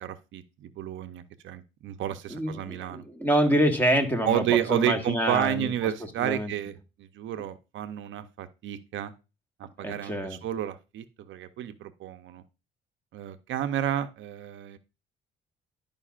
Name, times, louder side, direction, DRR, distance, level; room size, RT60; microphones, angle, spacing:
voice 1, 0.0-3.0 4.2-9.1 9.6-12.4 13.1-14.8, right 11 dB, 75° right, 10 dB, 0.6 m, -31 dB
voice 2, 2.3-4.4 4.7-5.7 6.2-6.5 9.8-10.4, equal, 10° left, 4 dB, 1.5 m, -26 dB
11.0 x 5.2 x 2.4 m, 0.29 s
cardioid pair, 90°, 20 cm